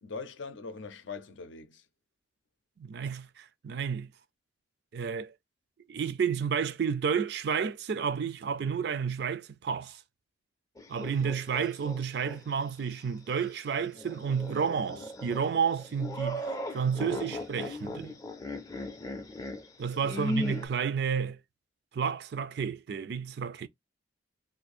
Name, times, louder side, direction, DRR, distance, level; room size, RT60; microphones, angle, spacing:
voice 1, 0.0-1.8 19.9-20.3, left 4 dB, 75° left, 0.6 m, -42 dB
voice 2, 2.8-4.1 4.9-5.3 5.9-10.0 10.9-16.5 16.7-18.1 19.8-21.4 21.9-23.7, right 6 dB, 55° right, 0.3 m, -31 dB
sound 1, 10.8-12.4 12.8-12.9 13.9-20.7, left 1 dB, 15° left, 0.4 m, -37 dB
2.6 x 2.5 x 4.1 m
head